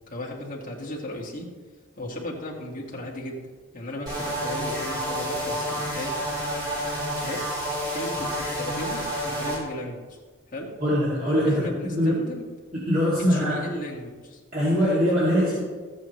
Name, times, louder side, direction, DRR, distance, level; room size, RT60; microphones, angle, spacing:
voice 1, 0.1-1.5 2.0-6.2 7.2-7.7 7.9-10.2 10.5-10.7 11.4-12.4 13.3-14.4, left 1 dB, 40° left, -3 dB, 2.0 m, -36 dB
sound 1, 4.1-9.6, equal, 20° right, 2.9 m, -29 dB
voice 2, 10.8-12.2 12.7-13.6 14.5-15.6, equal, 40° right, -9 dB, 2.6 m, -22 dB
14.0 x 8.6 x 3.2 m, 1.4 s
head